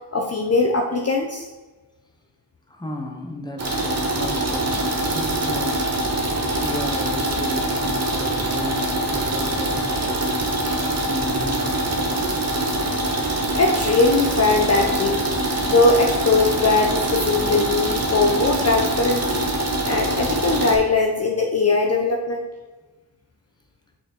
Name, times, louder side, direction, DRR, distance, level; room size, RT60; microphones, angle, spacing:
voice 1, 0.1-1.5 13.6-15.2 15.6-19.5 19.8-22.5, left 3 dB, 35° left, 2 dB, 0.7 m, -20 dB
voice 2, 2.7-4.9 5.1-6.0 6.6-12.4, left 1 dB, 10° left, 2 dB, 1.0 m, -34 dB
sound 1, 3.6-20.8, right 1 dB, 40° right, 1.5 m, -24 dB
6.4 x 6.0 x 4.4 m, 1.2 s
wide cardioid pair, 155°, 41 cm